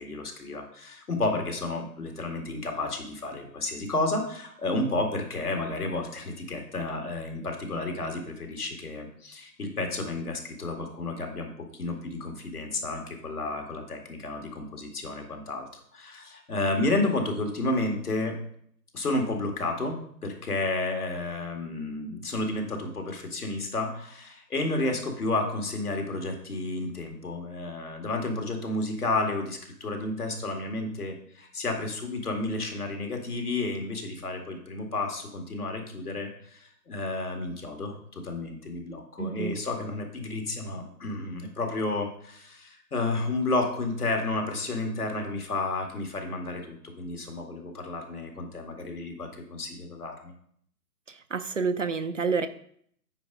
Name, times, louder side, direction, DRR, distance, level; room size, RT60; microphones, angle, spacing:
voice 1, 0.0-15.7 15.9-18.4 18.9-50.3, left 2 dB, 65° left, 3 dB, 2.2 m, -31 dB
voice 2, 39.2-39.6 51.3-52.5, right 5 dB, 50° right, 10 dB, 0.5 m, -28 dB
9.1 x 5.1 x 4.8 m, 0.65 s
figure-of-eight pair, 150°, 49 cm